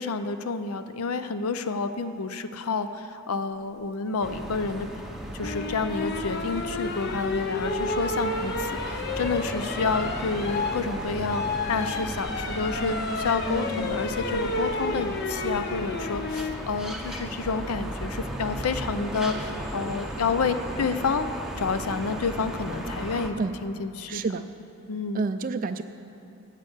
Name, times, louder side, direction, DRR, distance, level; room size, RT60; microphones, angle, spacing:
voice 1, 0.0-4.9 5.3-11.4 11.7-21.3 21.6-23.4 23.6-24.2 24.9-25.3, left 4 dB, 85° left, 10 dB, 0.5 m, -29 dB
sound 1, 4.2-23.3, equal, ahead, 0.7 m, -35 dB
sound 2, 5.4-16.6 18.3-18.7, left 2 dB, 50° left, 0.7 m, -31 dB
voice 2, 24.1-24.4 25.1-25.8, right 4 dB, 40° right, 8 dB, 0.3 m, -28 dB
9.8 x 8.4 x 7.3 m, 2.7 s
head